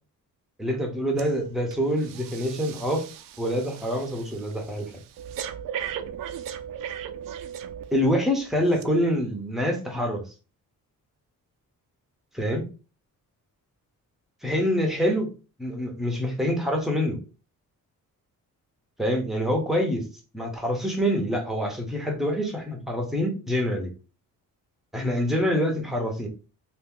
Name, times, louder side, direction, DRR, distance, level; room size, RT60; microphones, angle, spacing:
voice 1, 0.6-3.1 3.4-4.9 7.9-10.2 12.3-12.7 14.4-15.3 15.6-17.2 19.0-20.0 20.3-23.9 24.9-26.3, equal, ahead, 1 dB, 0.7 m, -26 dB
Breathing, 1.2-1.4 1.7-8.2 8.7-8.8, right 9 dB, 70° right, 0.5 m, -38 dB
2.8 x 2.6 x 3.6 m, 0.33 s
wide cardioid pair, 170°, 35 cm